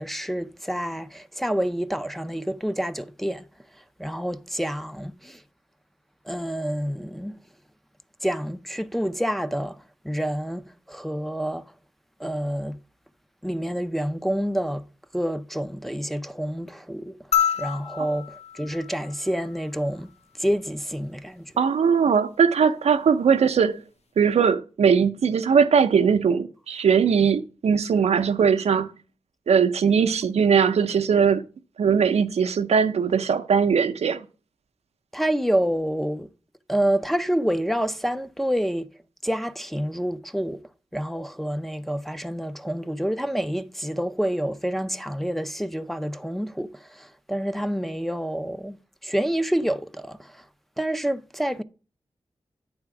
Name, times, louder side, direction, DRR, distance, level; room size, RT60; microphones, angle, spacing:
voice 1, 0.0-3.4 4.0-5.4 6.3-7.4 8.2-9.8 10.0-11.6 12.2-12.8 13.4-14.8 15.1-17.1 17.6-20.1 20.4-21.5 35.1-36.3 36.7-38.9 39.2-40.6 40.9-48.8 49.0-50.4 50.8-51.6, equal, ahead, 0.5 m, -28 dB
sound 1, 17.3-19.9 21.5-21.6, left 9 dB, 85° left, 0.9 m, -28 dB
voice 2, 21.6-23.8 24.2-28.9 29.5-31.4 31.8-34.2, right 6 dB, 90° right, 0.5 m, -20 dB
8.9 x 3.5 x 5.8 m
cardioid pair, 50°, 11 cm